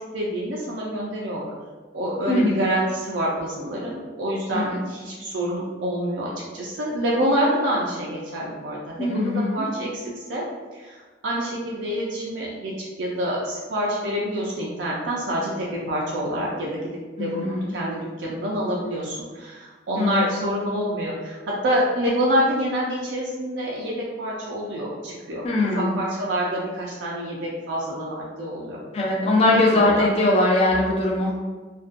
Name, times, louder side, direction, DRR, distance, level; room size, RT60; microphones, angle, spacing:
voice 1, 0.1-1.5 1.9-10.4 10.7-16.8 17.2-25.4 25.7-28.8 29.7-30.0, equal, 75° right, -4 dB, 0.4 m, -27 dB
voice 2, 2.3-2.8 4.5-4.8 9.0-9.7 17.2-17.7 20.0-20.3 25.4-26.0 28.9-31.3, left 2 dB, 35° left, -3 dB, 0.4 m, -21 dB
2.5 x 2.2 x 2.4 m, 1.4 s
head